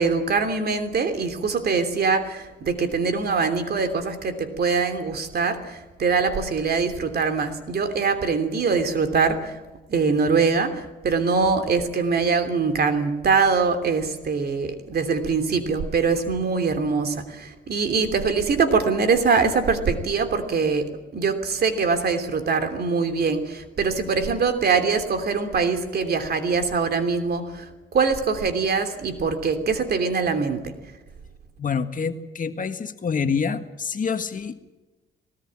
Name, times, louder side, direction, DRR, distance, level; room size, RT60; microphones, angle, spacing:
voice 1, 0.0-9.6 9.9-27.7 27.9-30.7, right 5 dB, 50° right, 7 dB, 3.1 m, -23 dB
voice 2, 31.6-34.7, left 6 dB, 40° left, 8 dB, 1.7 m, -27 dB
19.5 x 18.5 x 8.8 m, 1.1 s
cardioid pair, 90°, 20 cm